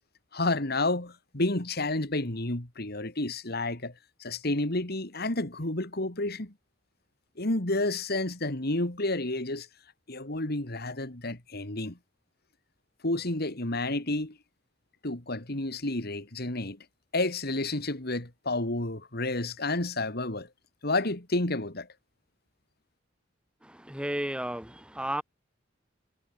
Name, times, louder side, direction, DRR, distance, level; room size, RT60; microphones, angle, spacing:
voice 1, 0.3-3.9 4.2-6.5 7.4-9.7 10.1-12.0 13.0-14.4 15.0-16.8 17.1-20.5 20.8-21.9, left 2 dB, 55° left, 3.0 m, -30 dB
voice 2, 23.7-25.2, right 1 dB, 5° right, 2.6 m, -33 dB
head